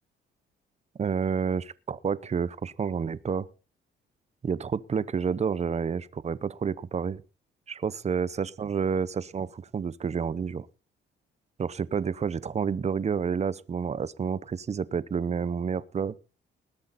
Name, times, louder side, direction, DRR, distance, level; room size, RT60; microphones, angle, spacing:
voice 1, 1.0-3.5 4.4-7.2 7.7-10.7 11.6-16.1, right 6 dB, 35° right, 0.8 m, -29 dB
20.0 x 8.2 x 4.2 m
cardioid pair, 90°, 20 cm